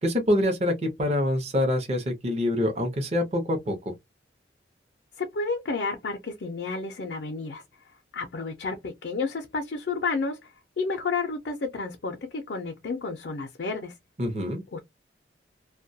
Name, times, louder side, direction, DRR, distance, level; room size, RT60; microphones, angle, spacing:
voice 1, 0.0-3.8 14.2-14.6, left 1 dB, 35° right, 0.7 m, -25 dB
voice 2, 5.2-7.6 8.1-10.5 10.8-13.9 14.7-14.8, left 4 dB, 65° left, 0.5 m, -31 dB
2.2 x 2.2 x 2.6 m
head